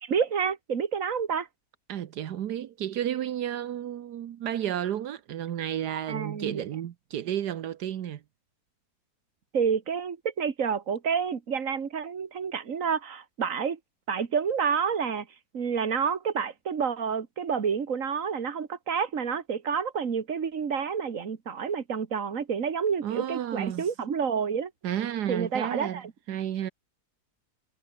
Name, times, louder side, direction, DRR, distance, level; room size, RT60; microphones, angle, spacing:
voice 1, 0.0-1.5 5.9-6.6 9.5-13.8 14.1-15.3 15.5-24.7 25.3-26.1, right 6 dB, 55° right, 2.1 m, -29 dB
voice 2, 1.9-8.2 23.0-23.9 24.8-26.0 26.3-26.7, right 10 dB, 80° right, 1.5 m, -32 dB
omnidirectional pair, 1.7 m